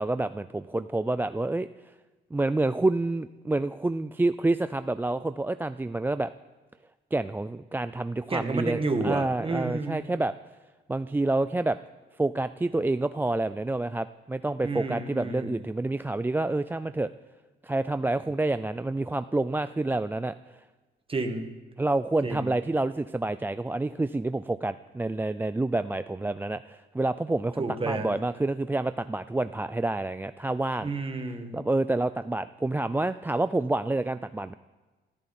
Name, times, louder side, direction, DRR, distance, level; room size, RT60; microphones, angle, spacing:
voice 1, 0.0-1.7 2.3-6.3 7.1-10.3 10.9-11.8 12.2-17.1 17.6-20.3 21.8-30.9 31.5-34.5, right 2 dB, 10° right, 12 dB, 0.4 m, -28 dB
voice 2, 8.3-10.1 14.6-15.6 21.1-21.5 22.2-22.5 27.6-28.1 30.8-31.6, right 3 dB, 25° right, 6 dB, 1.9 m, -30 dB
19.0 x 13.5 x 4.3 m, 1.3 s
cardioid pair, 90°, 20 cm